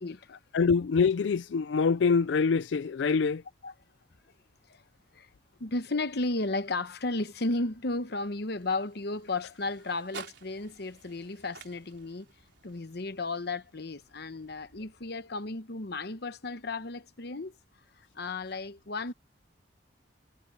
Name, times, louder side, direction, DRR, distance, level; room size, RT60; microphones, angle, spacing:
voice 1, 0.0-0.4 3.6-3.7 4.7-4.8 5.1-5.3 5.6-12.3 12.6-17.6 18.0-19.1, left 2 dB, 60° left, 1.0 m, -34 dB
voice 2, 0.5-3.4, left 5 dB, 80° left, 0.4 m, -25 dB
sound 1, 7.2-15.4, right 5 dB, 75° right, 3.9 m, -53 dB
head